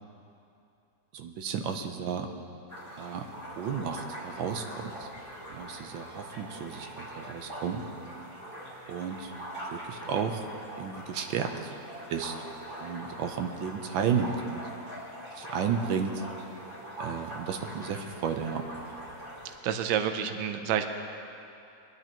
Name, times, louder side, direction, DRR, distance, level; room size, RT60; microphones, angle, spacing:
voice 1, 1.1-2.3 2.9-3.3 3.6-5.1 5.5-7.9 8.9-9.3 9.6-10.4 10.8-11.7 12.1-12.5 12.8-14.7 15.3-16.2 17.0-18.7, right 6 dB, 90° right, 5 dB, 1.5 m, -33 dB
sound 1, 2.7-19.5, right 1 dB, 40° right, 3.4 m, -42 dB
voice 2, 19.6-20.9, right 9 dB, 70° right, 7 dB, 1.3 m, -28 dB
21.5 x 11.5 x 3.0 m, 2.6 s
omnidirectional pair, 2.0 m